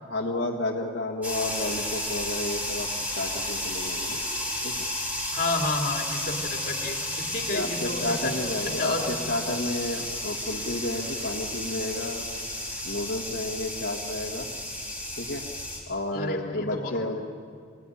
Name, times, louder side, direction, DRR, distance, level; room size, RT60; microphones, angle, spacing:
voice 1, 0.0-2.9 3.1-4.2 4.6-4.7 7.5-12.3 12.8-14.5 15.2-15.4 15.9-17.2, left 2 dB, 70° left, 0 dB, 1.7 m, -31 dB
sound 1, 1.2-15.8, left 1 dB, 10° right, 5.5 m, -32 dB
voice 2, 5.3-8.3 8.8-9.1 16.1-16.9, left 2 dB, 45° left, 2 dB, 2.7 m, -30 dB
25.5 x 17.0 x 9.9 m, 2.2 s
head